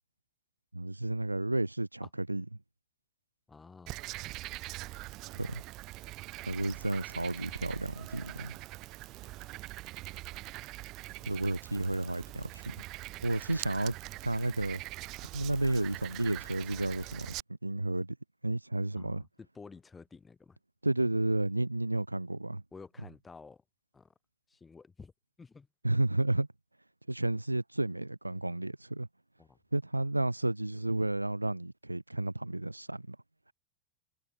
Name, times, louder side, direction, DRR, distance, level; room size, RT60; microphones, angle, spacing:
voice 1, 0.7-2.4 5.4-5.6 6.4-8.6 11.3-12.7 13.2-14.0 14.2-14.8 15.3-17.3 17.6-18.2 18.4-19.2 20.8-22.6 25.8-26.5 27.1-29.1 29.7-33.2, right 2 dB, 85° right, 0.6 m, -32 dB
voice 2, 3.5-4.0 19.0-20.6 22.7-23.6 23.9-24.1 24.5-25.1 25.4-25.7 29.4-29.6, left 4 dB, 15° left, 6.2 m, -51 dB
Frog, 3.9-17.4, right 19 dB, 40° right, 1.6 m, -43 dB
figure-of-eight pair, 90°, 0 cm